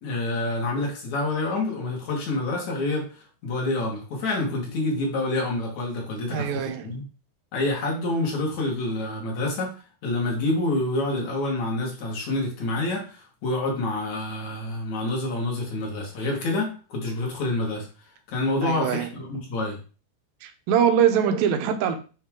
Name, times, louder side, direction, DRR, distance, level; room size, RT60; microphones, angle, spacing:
voice 1, 0.0-3.1 3.4-7.0 7.5-9.7 10.0-17.9 18.3-19.8, left 2 dB, 55° left, 2.5 m, -27 dB
voice 2, 6.3-6.9 18.6-19.1 20.4-22.0, right 8 dB, 80° right, 2.2 m, -23 dB
9.0 x 3.2 x 3.6 m
omnidirectional pair, 4.8 m